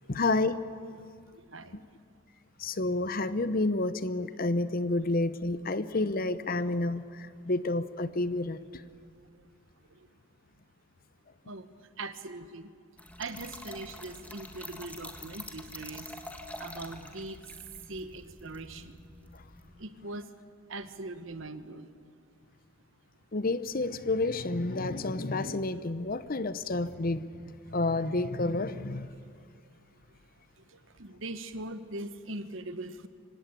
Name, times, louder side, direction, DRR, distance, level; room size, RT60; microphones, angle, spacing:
voice 1, 0.1-0.6 2.6-7.0 7.5-8.6 23.3-27.2 27.7-29.1, left 2 dB, 45° left, 0.8 m, -29 dB
voice 2, 1.3-1.9 2.8-2.9 5.0-5.1 8.7-8.8 9.3-9.4 9.9-10.1 11.4-11.7 12.0-12.7 13.2-16.1 16.6-17.4 17.9-19.0 19.8-20.3 20.7-21.9 30.7-33.1, right 2 dB, 65° right, 1.2 m, -41 dB
Trickle dribble / Fill (with liquid), 13.0-19.7, left 1 dB, 5° left, 1.6 m, -46 dB
25.0 x 17.5 x 9.0 m
head